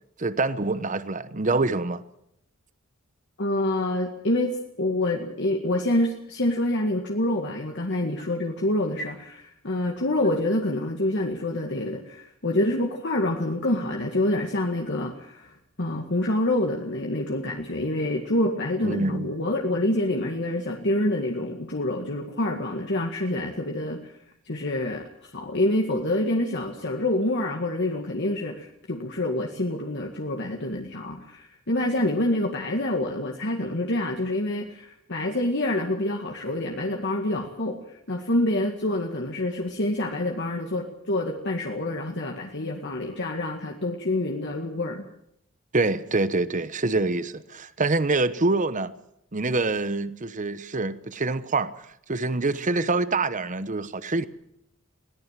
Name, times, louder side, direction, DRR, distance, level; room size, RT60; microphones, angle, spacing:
voice 1, 0.2-2.0 18.8-19.3 45.7-48.9 49.3-54.3, right 3 dB, 40° right, 1.0 m, -25 dB
voice 2, 3.4-24.2 24.5-45.1, left 1 dB, 60° left, 2.0 m, -27 dB
22.0 x 17.5 x 7.5 m
head